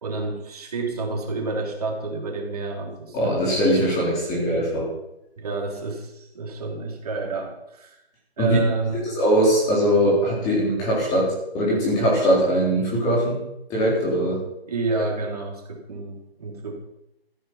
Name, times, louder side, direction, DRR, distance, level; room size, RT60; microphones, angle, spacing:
voice 1, 0.0-3.4 5.4-8.0 8.4-9.0 14.7-16.8, right 3 dB, 35° right, 0 dB, 3.5 m, -29 dB
voice 2, 3.1-4.9 8.4-8.6 9.2-13.4 13.7-14.4 14.9-15.0, equal, 10° left, -4 dB, 3.9 m, -21 dB
14.5 x 13.5 x 5.8 m, 0.85 s
figure-of-eight pair, 160°, 31 cm